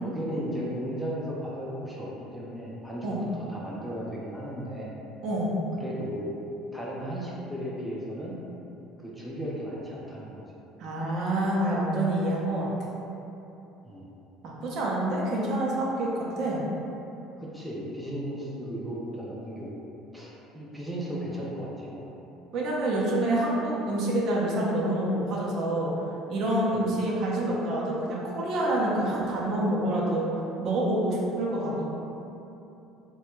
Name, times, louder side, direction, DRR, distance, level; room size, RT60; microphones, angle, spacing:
voice 1, 0.0-2.1 2.3-4.9 5.8-6.3 6.7-8.4 9.0-10.4 13.8-14.1 17.4-19.7 20.1-22.0 26.7-26.9, equal, ahead, -6 dB, 0.4 m, -35 dB
voice 2, 5.2-5.6 10.8-12.7 14.4-16.6 22.5-25.9 26.3-30.2 30.6-31.8, right 1 dB, 55° right, -4 dB, 0.6 m, -27 dB
3.3 x 2.2 x 3.0 m, 2.9 s
cardioid pair, 135°, 0 cm